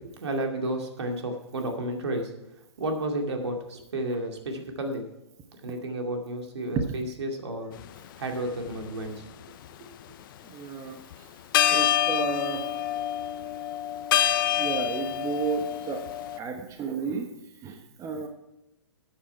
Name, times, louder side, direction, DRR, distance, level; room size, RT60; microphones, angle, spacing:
voice 1, 0.2-2.3 2.8-5.1 5.6-7.8 8.2-9.4, right 1 dB, 70° right, 3 dB, 2.4 m, -32 dB
sound 1, 7.8-8.0 8.7-9.7 11.1-11.2 11.5-16.4, left 11 dB, 45° left, 0.7 m, -26 dB
voice 2, 10.4-11.3 11.7-12.6 14.6-16.0 16.3-17.3 17.6-18.3, right 5 dB, 20° right, 5 dB, 1.2 m, -32 dB
13.0 x 8.8 x 4.6 m, 0.94 s
hypercardioid pair, 120°, 15 cm